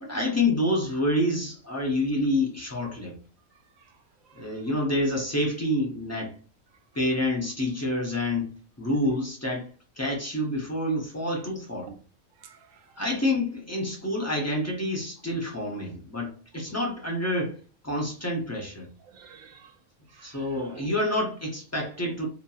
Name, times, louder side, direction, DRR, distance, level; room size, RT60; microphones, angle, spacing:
voice 1, 0.0-3.1 4.3-6.4 6.9-8.5 8.8-9.7 10.0-11.9 13.0-17.6 17.8-18.9 20.2-22.3, left 1 dB, 25° left, 0.3 m, -28 dB
voice 2, 4.3-4.7 11.9-12.0 12.4-12.9 19.0-19.7 20.1-21.0 22.0-22.3, right 7 dB, 85° right, 1.0 m, -50 dB
2.8 x 2.5 x 2.3 m
omnidirectional pair, 1.3 m